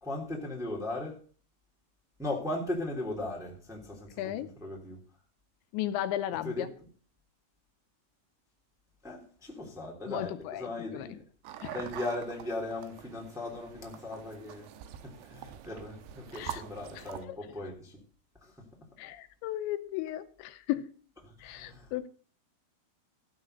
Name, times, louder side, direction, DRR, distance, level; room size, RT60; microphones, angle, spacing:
voice 1, 0.0-1.2 2.2-5.0 6.4-6.7 9.0-11.2 11.7-14.7 15.0-18.0 18.4-18.6 21.2-21.9, left 2 dB, ahead, 2.2 m, -38 dB
voice 2, 4.2-4.5 5.7-6.7 10.1-11.1 11.6-11.8 16.3-16.6 17.0-17.4 19.0-20.9 21.4-22.1, left 13 dB, 85° left, 3.0 m, -35 dB
sound 1, 11.4-17.2, right 11 dB, 80° right, 3.1 m, -45 dB
15.0 x 6.3 x 6.5 m
omnidirectional pair, 5.2 m